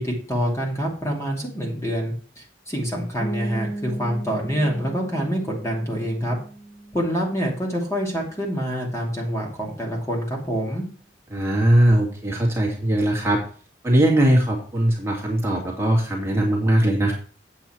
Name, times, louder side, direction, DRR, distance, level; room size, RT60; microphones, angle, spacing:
voice 1, 0.0-6.4 6.9-10.8, equal, 15° left, -1 dB, 2.7 m, -26 dB
sound 1, 3.2-8.8, right 2 dB, 40° left, 4.9 m, -37 dB
voice 2, 11.3-13.4 13.8-17.1, right 1 dB, 15° right, -2 dB, 2.3 m, -20 dB
8.5 x 8.1 x 4.5 m, 0.41 s
head